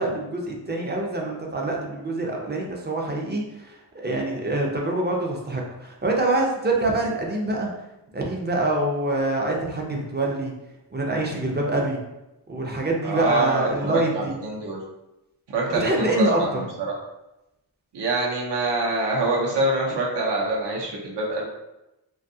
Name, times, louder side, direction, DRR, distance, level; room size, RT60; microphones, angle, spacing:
voice 1, 0.0-7.7 8.1-10.5 10.9-12.0 12.5-14.3 15.7-16.6, right 2 dB, 25° right, -1 dB, 0.4 m, -25 dB
voice 2, 13.0-14.8 15.5-16.9 17.9-21.5, right 2 dB, 70° right, -2 dB, 0.7 m, -25 dB
2.6 x 2.3 x 2.6 m, 0.93 s
wide cardioid pair, 115°, 42 cm